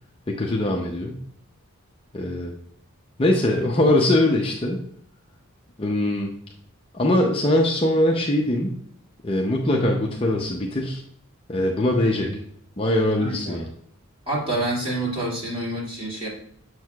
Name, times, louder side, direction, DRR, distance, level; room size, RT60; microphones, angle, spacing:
voice 1, 0.3-1.2 2.1-2.5 3.2-4.8 5.8-6.3 6.9-8.7 9.2-11.0 11.5-12.3 12.8-13.7, left 1 dB, 25° left, -1 dB, 0.6 m, -22 dB
voice 2, 13.2-13.6 14.3-16.3, right 1 dB, 25° right, -6 dB, 2.3 m, -27 dB
7.4 x 6.2 x 2.3 m, 0.67 s
head